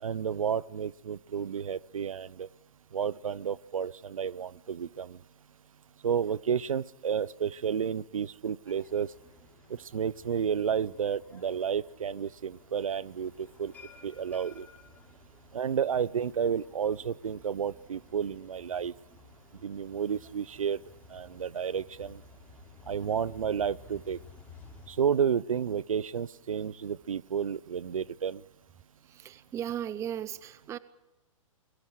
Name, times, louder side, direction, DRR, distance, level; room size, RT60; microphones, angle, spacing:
voice 1, 0.0-2.5 2.9-5.2 6.0-9.1 9.7-14.7 15.5-18.9 19.6-20.8 21.1-22.2 22.9-24.2 24.9-28.4, right 7 dB, 80° right, 23 dB, 0.8 m, -31 dB
sound 1, 8.6-24.9, left 4 dB, 10° left, 5.9 m, -55 dB
voice 2, 29.1-30.8, right 10 dB, 15° right, 17 dB, 0.6 m, -36 dB
29.5 x 22.0 x 4.8 m, 1.0 s
hypercardioid pair, 125°, 17 cm